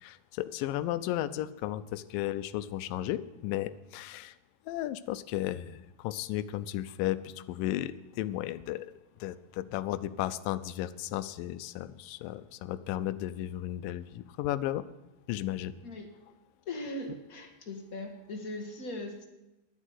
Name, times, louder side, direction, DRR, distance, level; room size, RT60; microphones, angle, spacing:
voice 1, 0.0-4.3 4.7-8.9 9.2-14.8 15.3-15.7, left 14 dB, 90° left, 14 dB, 2.3 m, -34 dB
voice 2, 16.6-19.2, left 1 dB, 40° left, 3 dB, 1.4 m, -39 dB
11.0 x 9.8 x 9.4 m, 0.99 s
omnidirectional pair, 3.8 m